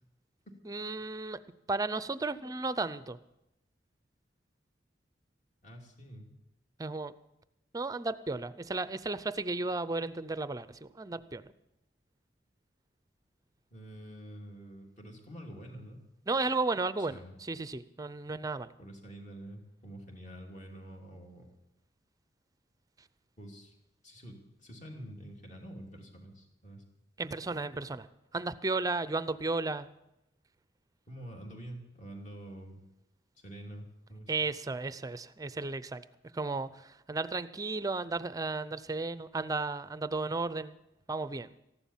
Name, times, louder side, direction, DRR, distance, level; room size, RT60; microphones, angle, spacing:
voice 1, 0.7-1.4 1.7-3.2 6.8-7.1 7.7-11.4 16.3-18.7 27.2-28.1 28.3-29.9 34.3-36.0 36.3-40.8 41.1-41.5, right 3 dB, 20° right, 15 dB, 0.5 m, -34 dB
voice 2, 5.6-6.3 13.7-16.0 17.0-17.4 18.8-21.5 23.4-23.7 24.0-26.8 31.1-32.8 33.4-34.3, right 1 dB, 40° left, 1 dB, 2.8 m, -47 dB
14.5 x 11.5 x 7.3 m, 0.87 s
head